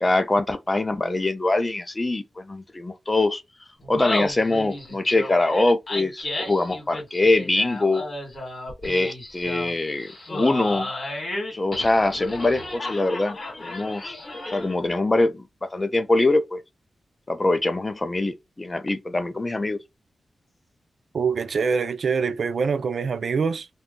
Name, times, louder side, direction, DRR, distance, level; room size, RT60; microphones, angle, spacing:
voice 1, 0.0-3.4 3.9-8.1 8.8-10.9 11.5-14.2 14.5-16.6 17.3-19.8, left 2 dB, 20° left, 0.4 m, -23 dB
Laughter, 3.8-14.9, left 2 dB, 45° left, 1.6 m, -33 dB
voice 2, 21.1-23.7, right 5 dB, 65° right, 0.4 m, -24 dB
2.6 x 2.3 x 3.6 m
wide cardioid pair, 120°, 0 cm